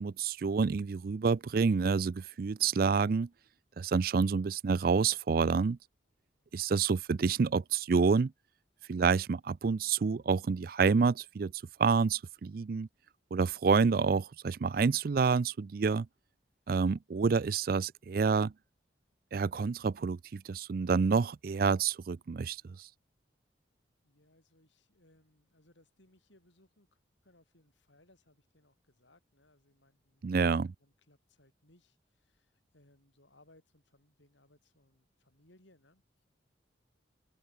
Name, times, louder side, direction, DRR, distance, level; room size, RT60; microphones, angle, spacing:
voice 1, 0.0-3.3 3.8-5.8 6.5-8.3 8.9-11.5 11.8-12.9 13.3-16.1 16.7-18.5 19.3-22.9 30.2-30.7, right 5 dB, 50° right, 0.4 m, -28 dB
voice 2, 24.0-36.3, left 1 dB, 80° left, 6.5 m, -66 dB
head